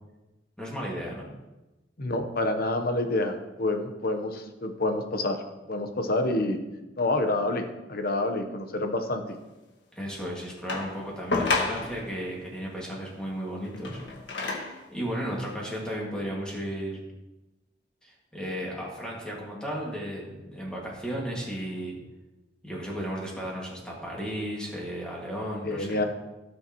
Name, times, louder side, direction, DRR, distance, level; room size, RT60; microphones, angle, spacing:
voice 1, 0.6-1.3 9.9-14.0 14.9-17.0 18.0-22.0 22.6-26.0, equal, 5° left, -4 dB, 2.1 m, -34 dB
voice 2, 2.0-5.4 5.7-6.6 7.0-9.2 25.6-26.0, left 2 dB, 55° left, 6 dB, 1.0 m, -28 dB
sound 1, 10.7-12.1 13.6-14.9 15.7-15.8, left 3 dB, 75° left, 1.7 m, -30 dB
16.5 x 6.5 x 3.0 m, 1.1 s
head